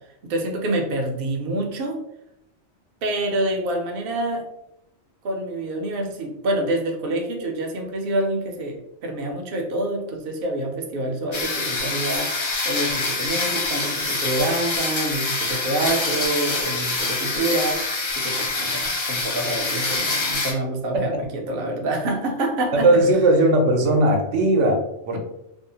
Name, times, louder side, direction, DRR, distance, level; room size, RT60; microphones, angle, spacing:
voice 1, 0.3-2.0 3.0-4.4 5.2-8.8 9.0-17.8 18.1-23.0, right 1 dB, 60° right, 1 dB, 0.7 m, -27 dB
sound 1, 11.3-20.5, left 3 dB, 50° left, 0.3 m, -25 dB
voice 2, 22.7-25.2, right 1 dB, 85° right, 2 dB, 0.9 m, -18 dB
2.6 x 2.0 x 2.7 m, 0.83 s
omnidirectional pair, 1.2 m